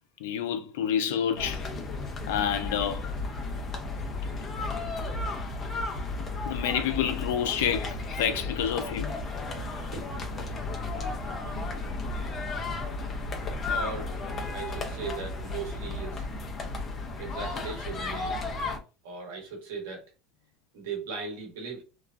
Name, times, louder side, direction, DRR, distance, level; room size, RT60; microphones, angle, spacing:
voice 1, 0.2-1.7 2.3-3.1 6.4-9.1, left 8 dB, 90° left, 0.5 m, -28 dB
sound 1, 1.4-18.8, left 3 dB, 35° left, 0.8 m, -34 dB
voice 2, 9.6-10.4 11.5-12.2 13.7-14.2 14.5-16.2 17.2-18.4 19.0-20.1 20.7-21.8, right 5 dB, 85° right, 1.2 m, -39 dB
3.0 x 2.2 x 2.4 m
supercardioid pair, 115°, 0 cm